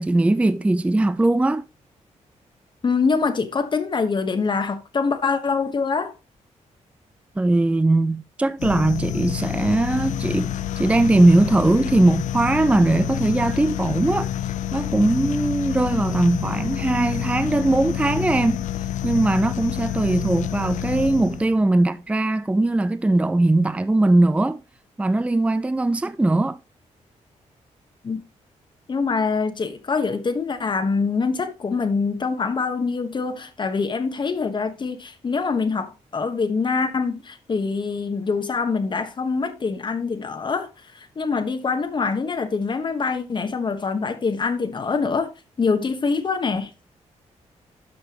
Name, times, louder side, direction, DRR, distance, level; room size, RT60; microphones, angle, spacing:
voice 1, 0.0-1.6 7.4-14.3 14.7-18.7 19.0-24.6 25.0-26.6, right 2 dB, 10° right, 0.5 m, -20 dB
voice 2, 2.8-6.1 28.0-28.2 28.9-45.3 45.6-46.7, left 4 dB, 40° left, 1.2 m, -24 dB
sound 1, 8.6-21.6, left 11 dB, 85° left, 0.6 m, -28 dB
12.5 x 5.6 x 3.0 m
cardioid pair, 105°, 12 cm